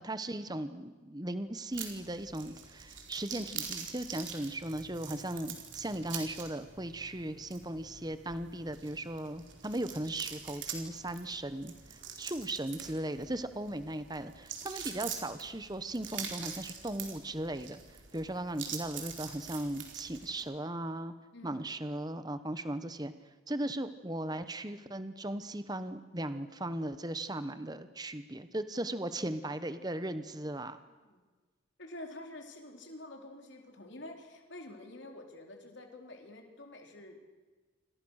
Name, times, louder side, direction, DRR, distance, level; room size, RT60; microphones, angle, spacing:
voice 1, 0.0-17.8 18.1-21.1 21.4-23.1 23.5-30.8, right 1 dB, 20° right, 11 dB, 1.1 m, -37 dB
sound 1, 1.7-20.4, right 7 dB, 60° right, 4.3 m, -45 dB
voice 2, 21.3-21.7 30.4-30.7 31.0-31.2 31.8-37.3, left 1 dB, 60° left, 3 dB, 4.0 m, -48 dB
29.0 x 26.5 x 6.5 m, 1.3 s
head